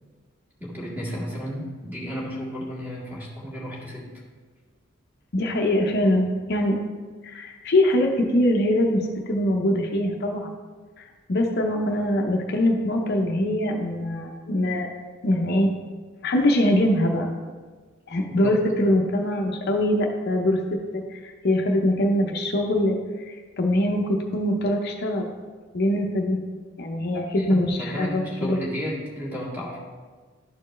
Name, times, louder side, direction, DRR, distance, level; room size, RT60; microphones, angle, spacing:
voice 1, 0.6-4.1 18.3-18.6 27.1-29.8, equal, 10° right, -6 dB, 1.9 m, -33 dB
voice 2, 5.3-6.8 7.2-9.0 9.3-10.5 11.0-14.9 15.2-15.7 16.2-17.3 18.1-20.6 20.9-25.3 25.7-26.4 26.8-28.6, left 1 dB, 55° left, 2 dB, 0.6 m, -23 dB
12.0 x 4.4 x 3.2 m, 1.5 s
head